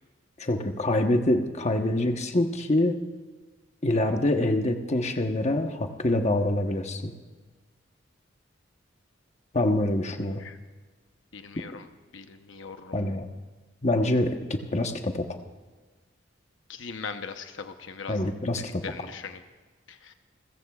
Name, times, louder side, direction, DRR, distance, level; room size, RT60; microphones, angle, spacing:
voice 1, 0.4-3.0 3.8-7.1 9.5-10.4 12.9-13.2 13.8-15.4 18.1-18.8, left 1 dB, 35° left, 5 dB, 1.1 m, -25 dB
voice 2, 11.3-11.9 12.1-13.0 16.7-18.2 18.8-19.4 19.9-20.1, left 5 dB, 85° left, 7 dB, 0.9 m, -40 dB
30.0 x 14.5 x 2.4 m, 1.3 s
head